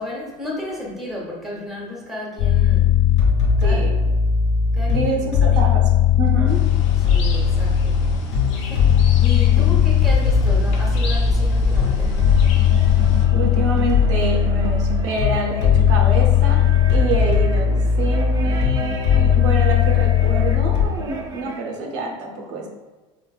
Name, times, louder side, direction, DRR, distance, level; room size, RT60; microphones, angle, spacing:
voice 1, 0.0-2.9 3.6-3.9 4.7-5.1 5.4-5.6 7.0-8.0 8.5-12.1, left 1 dB, ahead, -3 dB, 0.8 m, -33 dB
sound 1, 2.4-20.8, left 7 dB, 70° left, 1.3 m, -18 dB
voice 2, 3.6-3.9 4.9-5.8 6.1-6.6 13.3-16.6 16.9-22.7, right 3 dB, 80° right, 0 dB, 0.7 m, -27 dB
sound 2, 6.5-13.3, left 3 dB, 85° left, 0.5 m, -28 dB
sound 3, 11.8-21.7, right 3 dB, 25° right, 0.4 m, -35 dB
3.8 x 2.5 x 2.3 m, 1.2 s
supercardioid pair, 120°, 15 cm